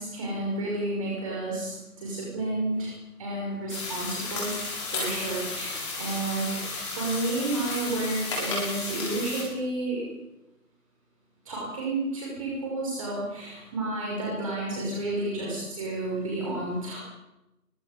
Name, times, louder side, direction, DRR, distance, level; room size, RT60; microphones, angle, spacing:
voice 1, 0.0-2.9 3.2-4.5 4.8-10.0 11.4-17.0, right 2 dB, 20° right, -4 dB, 6.0 m, -31 dB
sound 1, 3.7-9.4, left 3 dB, 20° left, 6.9 m, -33 dB
28.0 x 24.0 x 5.3 m, 0.92 s
figure-of-eight pair, 160°, 46 cm